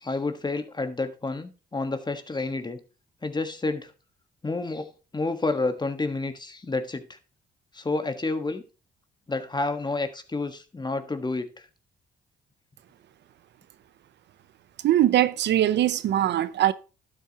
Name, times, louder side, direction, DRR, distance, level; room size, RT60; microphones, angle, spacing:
voice 1, 0.0-2.8 3.2-3.9 4.4-7.2 7.7-8.6 9.3-11.6, left 3 dB, 25° left, 1.4 m, -29 dB
voice 2, 14.8-16.7, right 12 dB, 70° right, 0.6 m, -21 dB
12.0 x 7.7 x 2.9 m
cardioid pair, 75°, 19 cm